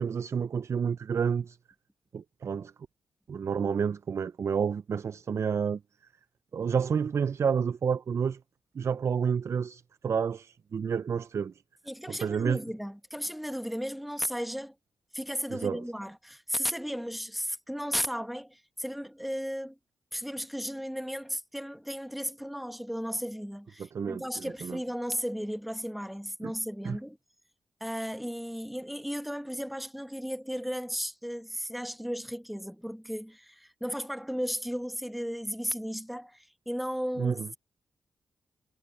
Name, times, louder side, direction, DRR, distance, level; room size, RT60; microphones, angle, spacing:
voice 1, 0.0-1.6 2.1-2.7 3.3-5.8 6.5-8.4 8.8-11.5 12.1-12.6 15.5-15.8 23.9-24.8 26.4-26.5 26.8-27.0 37.2-37.5, right 6 dB, 45° right, 0.3 m, -29 dB
voice 2, 11.9-14.7 15.1-19.8 20.1-27.2 27.8-37.6, equal, ahead, 1.3 m, -35 dB
cardioid pair, 85°, 6 cm